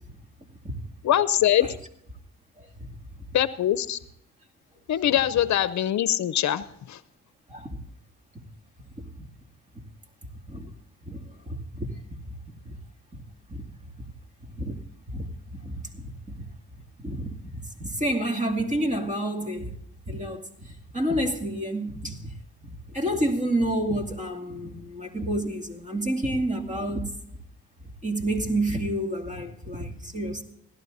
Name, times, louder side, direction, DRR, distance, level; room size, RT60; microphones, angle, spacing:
voice 1, 1.0-1.7 3.3-4.0 4.9-7.0, left 11 dB, 60° left, 0.7 m, -23 dB
voice 2, 11.5-11.9 12.7-12.8 13.1-13.2 13.5-13.6 14.4-14.8 15.1-16.5 17.0-19.7 20.1-22.3 22.9-27.1 28.0-30.4, right 1 dB, 20° right, 2.4 m, -29 dB
16.5 x 12.0 x 4.0 m
cardioid pair, 90°, 32 cm